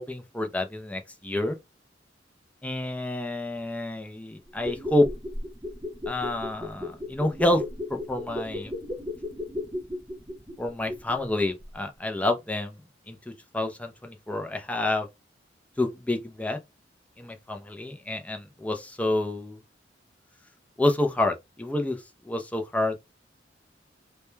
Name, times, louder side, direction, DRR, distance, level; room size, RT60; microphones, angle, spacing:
voice 1, 0.0-1.6 2.6-5.1 6.1-7.6 7.9-8.7 10.6-12.8 13.1-13.2 13.5-15.1 15.8-16.6 17.2-19.6 20.8-22.0 22.3-23.0, left 1 dB, 10° left, 0.4 m, -28 dB
sound 1, 4.5-11.3 11.6-11.7, left 2 dB, 15° right, 0.7 m, -35 dB
2.1 x 2.1 x 3.0 m
head